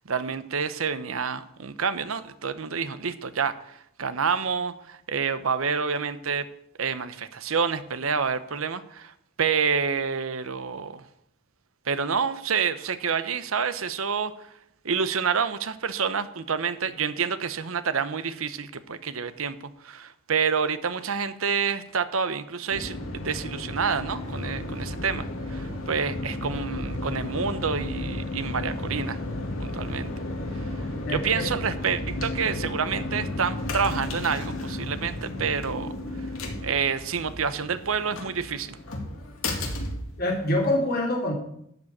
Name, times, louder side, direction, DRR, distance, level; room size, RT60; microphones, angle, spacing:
voice 1, 0.0-6.5 6.8-11.0 11.9-14.5 14.8-29.2 29.6-30.1 30.5-35.9 36.2-36.3 36.6-38.8, right 6 dB, 80° right, 13 dB, 0.8 m, -28 dB
sound 1, 22.7-40.8, left 1 dB, 80° left, 2.2 m, -33 dB
voice 2, 31.1-31.5 40.2-41.3, left 1 dB, 45° left, -2 dB, 3.6 m, -25 dB
12.5 x 5.3 x 8.5 m, 0.72 s
head